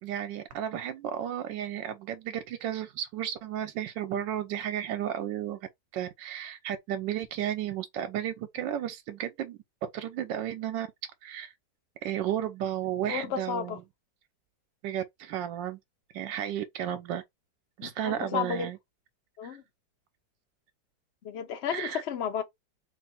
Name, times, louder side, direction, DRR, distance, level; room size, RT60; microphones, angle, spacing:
voice 1, 0.0-5.6 5.9-9.6 9.9-10.9 11.2-11.5 12.0-13.8 14.8-15.8 16.1-17.2 17.8-18.8 19.4-19.6 21.7-22.0, right 10 dB, 85° right, 1.3 m, -33 dB
voice 2, 13.1-13.8 17.8-18.7 19.4-19.6 21.2-22.4, left 8 dB, 60° left, 0.7 m, -32 dB
3.0 x 2.6 x 4.3 m
omnidirectional pair, 2.0 m